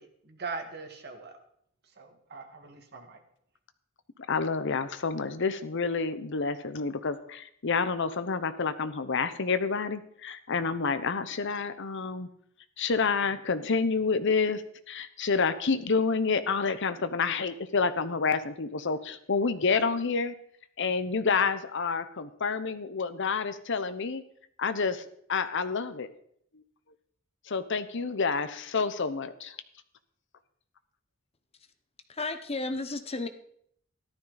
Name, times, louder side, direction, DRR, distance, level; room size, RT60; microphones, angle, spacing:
voice 1, 0.0-1.4 2.0-3.2, right 4 dB, 50° right, 5 dB, 1.9 m, -41 dB
voice 2, 4.3-12.3 12.8-14.6 14.9-20.3 20.8-24.2 24.6-25.0 25.3-26.1 27.5-29.5, left 4 dB, 60° left, 12 dB, 0.9 m, -28 dB
voice 3, 32.1-33.3, left 2 dB, 30° left, 9 dB, 1.0 m, -33 dB
14.0 x 12.5 x 4.0 m, 0.66 s
head